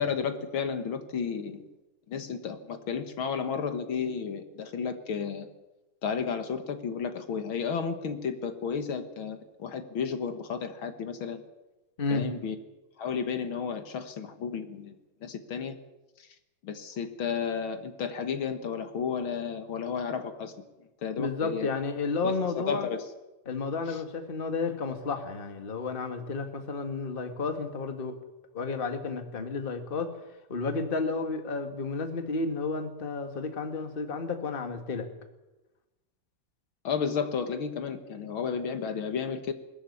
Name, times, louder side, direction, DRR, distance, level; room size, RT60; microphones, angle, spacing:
voice 1, 0.0-1.6 2.1-5.5 6.0-11.4 12.1-12.5 13.0-14.9 15.2-15.8 16.2-16.3 16.6-20.5 21.0-21.7 22.2-23.0 23.9-24.0 36.8-39.5, left 6 dB, 55° left, 8 dB, 1.5 m, -32 dB
voice 2, 12.0-12.3 21.2-22.9 23.4-28.2 28.5-30.1 30.5-35.1, left 4 dB, 25° left, 6 dB, 1.1 m, -32 dB
20.5 x 14.0 x 9.8 m, 1.0 s
omnidirectional pair, 4.0 m